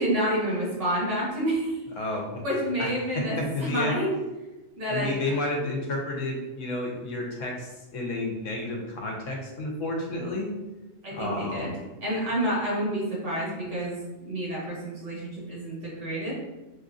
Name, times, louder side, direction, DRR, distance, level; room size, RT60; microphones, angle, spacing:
voice 1, 0.0-1.8 2.4-4.1 4.8-5.4 11.0-11.7 12.0-14.0 14.3-16.3, right 1 dB, 70° right, -5 dB, 1.7 m, -29 dB
voice 2, 2.0-2.4 2.8-2.9 3.2-3.9 4.9-10.5 11.1-11.8, left 2 dB, 80° left, 0 dB, 1.2 m, -31 dB
4.7 x 2.5 x 2.5 m, 1.1 s
omnidirectional pair, 1.3 m